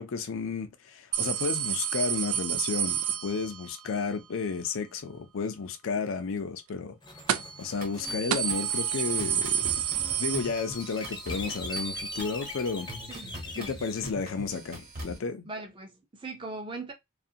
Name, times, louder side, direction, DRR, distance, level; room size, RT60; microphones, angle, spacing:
voice 1, 0.0-7.0 7.6-9.8 10.2-12.9 13.6-15.5, left 5 dB, 70° left, 0.4 m, -32 dB
sound 1, 1.1-3.8 7.3-7.7 8.0-8.1 8.3-11.0 11.4-11.5 12.5-12.6, right 9 dB, 90° right, 0.4 m, -29 dB
sound 2, 7.0-14.0, left 3 dB, 20° left, 0.6 m, -43 dB
sound 3, 7.8-15.2, right 1 dB, 40° right, 1.1 m, -41 dB
voice 2, 13.1-13.7 15.5-16.9, right 3 dB, 25° right, 0.5 m, -40 dB
2.5 x 2.5 x 2.7 m
head